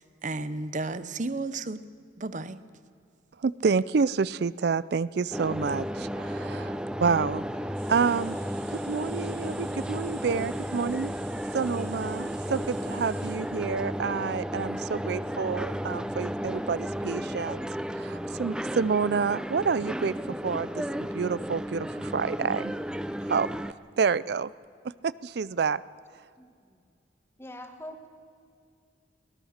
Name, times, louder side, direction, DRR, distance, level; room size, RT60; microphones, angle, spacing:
voice 1, 0.0-1.8 2.2-2.6, right 3 dB, 40° right, 14 dB, 0.8 m, -33 dB
voice 2, 3.4-7.4 7.9-8.4 8.7-11.1 11.5-17.6 18.0-22.7 23.3-23.5 24.0-24.5 25.0-25.8, right 5 dB, 60° right, 18 dB, 0.4 m, -28 dB
sound 1, 5.3-23.7, equal, 5° right, 0.5 m, -33 dB
sound 2, 7.7-13.4, right 6 dB, 80° right, 5.2 m, -50 dB
voice 3, 26.4-26.8 27.4-28.1, left 1 dB, 15° left, 5 dB, 1.7 m, -44 dB
23.0 x 17.5 x 6.5 m, 2.3 s
head